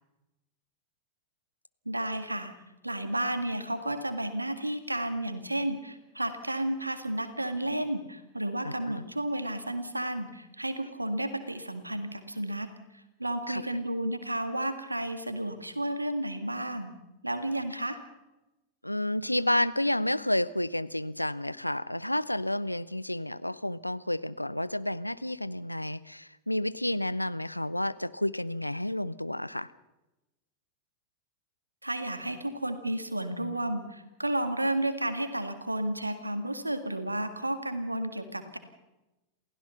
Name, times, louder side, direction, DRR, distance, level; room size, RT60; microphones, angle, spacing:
voice 1, 1.9-2.5 2.8-16.9 17.2-18.0 31.8-38.6, right 1 dB, 85° right, 9 dB, 1.9 m, -32 dB
voice 2, 8.6-9.0 13.5-13.7 18.8-29.7, left 1 dB, 85° left, 17 dB, 0.6 m, -30 dB
28.0 x 16.0 x 5.8 m, 1.0 s
figure-of-eight pair, 90°, 0 cm